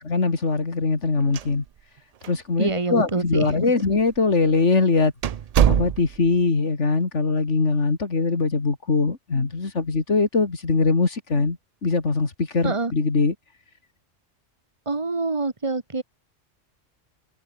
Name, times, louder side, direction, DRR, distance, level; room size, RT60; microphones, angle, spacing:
voice 1, 0.0-1.6 2.3-5.1 5.7-13.3, left 4 dB, 75° left, 2.9 m, -22 dB
sound 1, 1.2-2.0 2.2-2.3 3.1-3.2 4.0-4.2 4.6-4.7 5.2-6.4, right 9 dB, 80° right, 0.3 m, -23 dB
voice 2, 2.6-3.7 12.6-12.9 14.9-16.0, right 3 dB, 25° right, 1.9 m, -26 dB
omnidirectional pair, 1.3 m